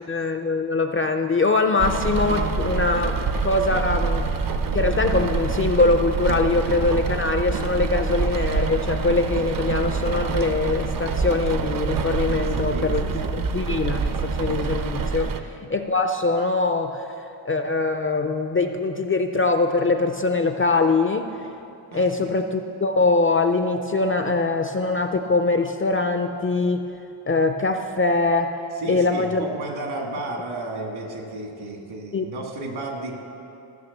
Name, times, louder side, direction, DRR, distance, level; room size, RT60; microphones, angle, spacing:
voice 1, 0.0-3.1 3.4-4.3 4.7-13.0 13.4-17.1 17.4-21.3 21.9-26.9 27.3-28.5 28.9-29.5 32.1-32.3, left 3 dB, 30° left, 6 dB, 0.3 m, -22 dB
Rain, 1.8-15.4, right 4 dB, 45° right, 0.6 m, -26 dB
voice 2, 12.3-12.9 13.2-13.3 15.3-15.4 21.9-22.4 28.8-33.2, right 2 dB, 70° right, 1 dB, 2.1 m, -33 dB
14.5 x 6.5 x 7.1 m, 2.7 s
wide cardioid pair, 165°, 48 cm